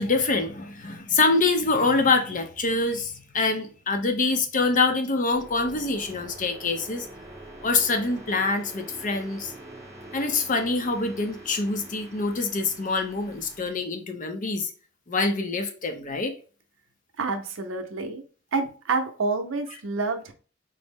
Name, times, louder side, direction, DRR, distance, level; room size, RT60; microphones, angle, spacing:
voice 1, 0.0-7.1 7.6-9.5 10.1-14.7 15.1-16.3, left 3 dB, 40° left, 0.6 m, -25 dB
sound 1, 5.3-13.7, right 1 dB, 15° right, 0.8 m, -45 dB
voice 2, 17.2-18.2 18.5-20.3, right 3 dB, 80° right, 0.6 m, -28 dB
4.0 x 2.0 x 3.4 m
head